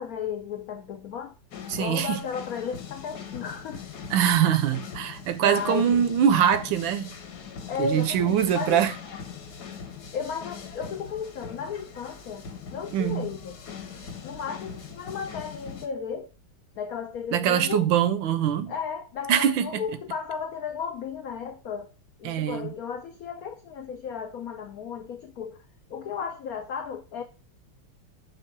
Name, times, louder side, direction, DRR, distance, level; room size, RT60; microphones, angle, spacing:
voice 1, 0.0-1.4 1.8-3.8 5.4-6.0 7.7-8.8 10.1-13.6 14.2-16.3 16.8-17.9 18.7-21.9 22.2-25.6 25.9-27.2, left 6 dB, 80° left, 0.8 m, -34 dB
sound 1, 1.5-15.9, left 6 dB, 60° left, 1.4 m, -41 dB
voice 2, 1.7-2.2 4.1-7.1 7.8-8.9 12.9-13.3 17.3-18.7 19.3-19.8 22.2-22.7, right 9 dB, 75° right, 1.2 m, -23 dB
5.6 x 3.6 x 5.9 m
omnidirectional pair, 2.3 m